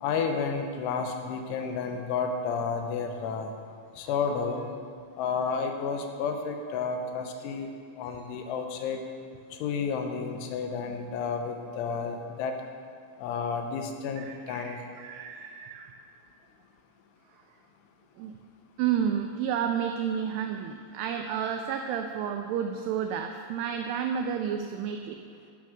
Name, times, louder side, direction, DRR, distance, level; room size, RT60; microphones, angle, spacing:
voice 1, 0.0-3.5 4.0-4.6 5.2-7.7 8.0-9.0 9.6-12.5 13.2-14.8, left 5 dB, 80° left, 4 dB, 3.4 m, -31 dB
voice 2, 14.2-16.0 18.2-18.3 18.8-25.2, right 8 dB, 90° right, 5 dB, 2.3 m, -31 dB
11.0 x 10.5 x 6.2 m, 2.2 s
omnidirectional pair, 5.5 m